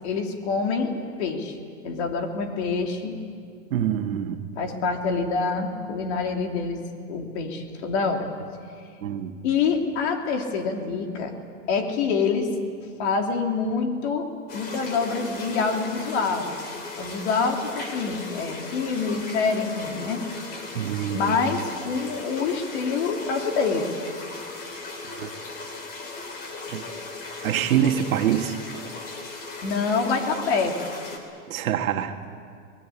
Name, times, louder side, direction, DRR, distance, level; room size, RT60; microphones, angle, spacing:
voice 1, 0.0-0.9 1.2-1.6 1.8-3.2 4.6-8.3 9.4-11.3 11.7-12.5 13.0-14.3 14.5-16.5 17.0-20.2 21.1-23.9 29.6-30.7, left 5 dB, 50° left, 3.1 m, -26 dB
voice 2, 3.7-4.4 9.0-9.4 20.8-21.4 25.1-25.3 26.7-26.8 27.4-28.6 31.5-32.3, right 10 dB, 70° right, 1.9 m, -25 dB
sound 1, 14.5-31.2, left 3 dB, 20° left, 2.9 m, -37 dB
25.5 x 20.0 x 8.6 m
supercardioid pair, 165°, 44 cm